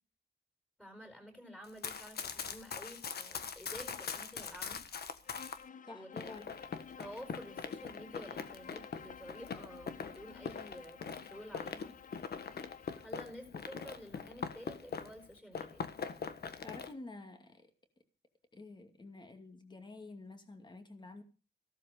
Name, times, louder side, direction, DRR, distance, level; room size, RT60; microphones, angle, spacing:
voice 1, 0.8-4.8 5.9-6.6 7.0-11.9 13.0-15.8, equal, 5° left, 4.7 m, -50 dB
Run, 1.6-5.6 6.2-15.2 15.5-16.9, left 6 dB, 60° left, 1.5 m, -42 dB
Bowed string instrument, 5.2-13.1, left 7 dB, 45° left, 0.7 m, -54 dB
voice 2, 5.9-6.6 16.6-17.7 18.5-21.2, left 2 dB, 25° left, 2.5 m, -49 dB
15.5 x 13.0 x 5.3 m
wide cardioid pair, 160°, 18 cm